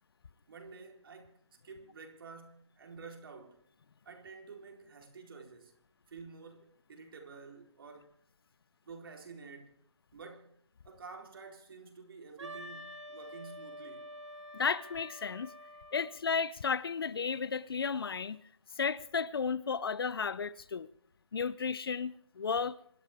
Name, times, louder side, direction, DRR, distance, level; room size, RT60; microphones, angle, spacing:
voice 1, 0.5-3.6 4.0-5.7 6.1-8.1 8.8-9.8 10.1-10.6 10.8-14.2, right 4 dB, 50° right, 4.0 m, -50 dB
Wind instrument woodwind instrument, 12.4-16.2, equal, 75° right, 2.1 m, -47 dB
voice 2, 14.5-15.5 15.9-18.4 18.8-20.9 21.3-22.8, left 5 dB, 50° left, 0.8 m, -33 dB
28.0 x 13.0 x 3.6 m
figure-of-eight pair, 160°, 15 cm